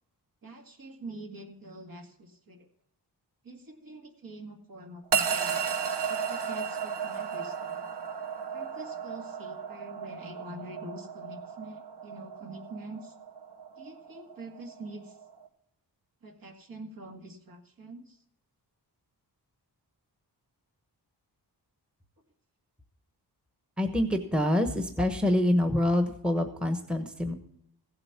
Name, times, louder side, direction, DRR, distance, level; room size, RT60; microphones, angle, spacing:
voice 1, 0.4-2.7 3.4-5.6 6.1-7.8 8.5-13.2 13.8-15.2 16.2-18.2, right 1 dB, 55° right, 3 dB, 2.2 m, -45 dB
sound 1, 5.1-15.5, right 6 dB, 80° right, 1.2 m, -34 dB
voice 2, 23.8-27.3, left 1 dB, ahead, 6 dB, 1.1 m, -26 dB
16.0 x 7.8 x 5.9 m, 0.73 s
wide cardioid pair, 170°, 40 cm